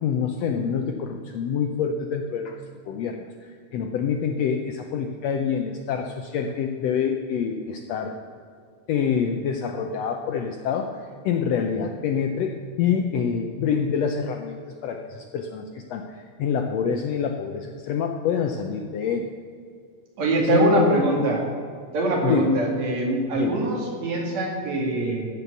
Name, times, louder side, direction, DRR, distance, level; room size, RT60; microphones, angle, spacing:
voice 1, 0.0-2.6 2.9-3.3 3.7-8.2 8.9-12.5 12.8-16.0 16.4-19.2 20.4-21.1 22.2-22.5 23.3-23.6, left 7 dB, 80° left, 4 dB, 1.5 m, -26 dB
voice 2, 20.2-21.4 21.9-25.2, right 2 dB, 60° right, -1 dB, 3.2 m, -23 dB
14.5 x 5.5 x 8.1 m, 2.2 s
omnidirectional pair, 3.7 m